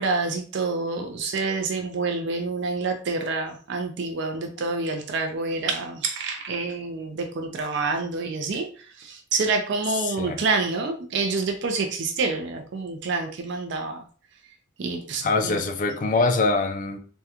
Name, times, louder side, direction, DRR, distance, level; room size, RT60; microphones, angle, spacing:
voice 1, 0.0-14.0 14.8-15.6, right 4 dB, 65° right, 0.4 m, -27 dB
voice 2, 10.0-10.4 15.2-17.0, left 3 dB, 40° left, 0.4 m, -24 dB
3.5 x 2.2 x 2.8 m
head